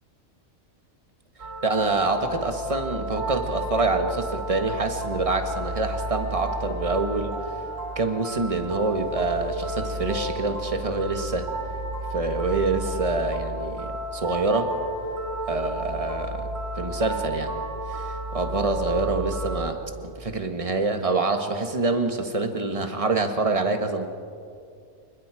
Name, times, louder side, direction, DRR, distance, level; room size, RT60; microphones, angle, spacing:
sound 1, 1.4-19.7, right 1 dB, 75° right, 3.3 m, -32 dB
voice 1, 1.6-7.4 7.9-11.5 12.1-14.7 15.5-16.5 16.8-17.5 17.9-24.1, right 3 dB, 25° right, 6 dB, 1.5 m, -26 dB
26.0 x 21.0 x 4.9 m, 2.3 s
omnidirectional pair, 1.3 m